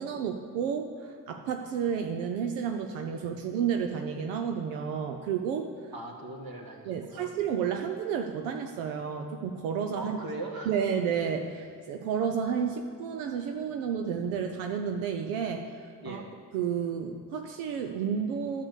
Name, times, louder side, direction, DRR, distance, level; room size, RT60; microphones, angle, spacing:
voice 1, 0.0-5.7 6.8-10.2 10.7-15.8 16.1-16.2 16.5-18.6, right 7 dB, 90° right, 4 dB, 0.7 m, -31 dB
voice 2, 5.9-7.3 10.0-10.8 16.0-16.3, right 2 dB, 45° right, 1 dB, 2.2 m, -40 dB
9.8 x 6.9 x 8.2 m, 2.1 s
hypercardioid pair, 45°, 48 cm